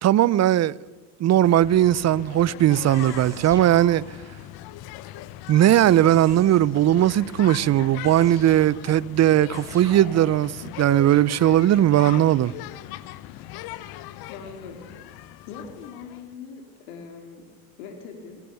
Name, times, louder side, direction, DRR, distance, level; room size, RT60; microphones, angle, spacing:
voice 1, 0.0-0.8 1.2-4.0 5.5-12.5, right 12 dB, 40° right, 0.7 m, -19 dB
sound 1, 1.4-16.3, left 14 dB, 60° left, 1.2 m, -39 dB
sound 2, 2.9-4.4 6.1-6.9 8.1-8.9 9.5-10.6, right 2 dB, 10° right, 6.9 m, -44 dB
voice 2, 14.3-14.8 15.3-16.6 16.9-17.4 17.8-18.4, left 6 dB, 80° left, 3.9 m, -41 dB
23.0 x 19.0 x 7.0 m
supercardioid pair, 90°, 41 cm